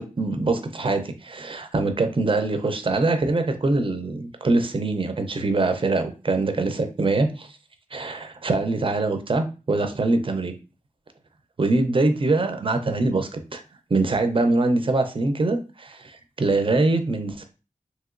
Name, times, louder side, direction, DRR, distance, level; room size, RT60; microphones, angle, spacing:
voice 1, 0.0-7.5 7.9-10.5 11.6-13.6 13.9-17.4, right 2 dB, 40° right, 7 dB, 0.4 m, -23 dB
2.9 x 2.9 x 2.4 m, 0.33 s
wide cardioid pair, 70°, 14 cm